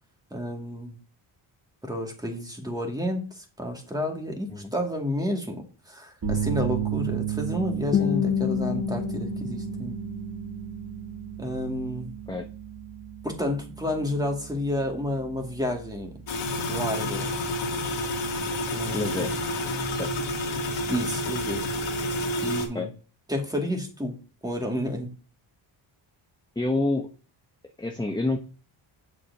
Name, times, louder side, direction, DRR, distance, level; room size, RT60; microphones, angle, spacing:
voice 1, 0.3-1.0 1.8-10.0 11.4-12.1 13.2-16.2 16.7-17.3 18.7-19.3 20.9-21.7 22.4-22.9 23.3-24.2 24.4-25.1, left 1 dB, 10° right, 2 dB, 2.2 m, -30 dB
sound 1, 6.2-22.1, right 10 dB, 45° right, 2.6 m, -35 dB
Guitar, 7.9-10.9, left 9 dB, 30° left, 0.4 m, -29 dB
sound 2, 16.3-22.7, left 1 dB, 65° left, 1.8 m, -29 dB
voice 2, 18.9-19.4 19.9-20.1 22.7-22.9 26.6-27.1 27.8-28.4, left 2 dB, 10° left, 4 dB, 0.9 m, -28 dB
7.3 x 6.9 x 2.8 m, 0.36 s
cardioid pair, 75°, 49 cm